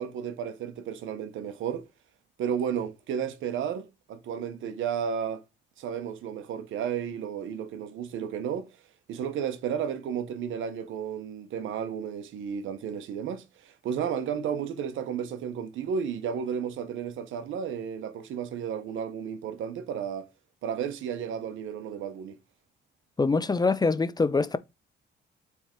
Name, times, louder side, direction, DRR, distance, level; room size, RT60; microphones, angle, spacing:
voice 1, 0.0-1.9 2.4-5.4 5.8-8.7 9.1-20.3 20.6-22.4, right 8 dB, 80° right, 1.1 m, -33 dB
voice 2, 23.2-24.6, left 4 dB, 20° left, 0.5 m, -24 dB
7.2 x 3.6 x 4.5 m
cardioid pair, 90°, 20 cm